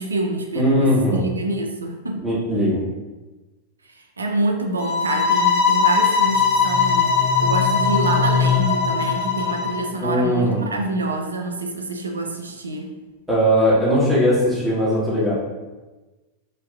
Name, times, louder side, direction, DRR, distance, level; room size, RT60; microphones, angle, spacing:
voice 1, 0.0-2.2 4.0-12.9, right 2 dB, 75° right, 3 dB, 0.3 m, -26 dB
voice 2, 0.5-1.2 2.1-2.8 10.0-10.7 13.3-15.3, equal, 5° right, -8 dB, 1.2 m, -19 dB
sound 1, 4.8-9.8, left 6 dB, 60° left, 0.8 m, -20 dB
sound 2, 6.3-10.2, left 5 dB, 55° right, 1.2 m, -26 dB
4.0 x 2.5 x 2.4 m, 1.2 s
figure-of-eight pair, 90°, 0 cm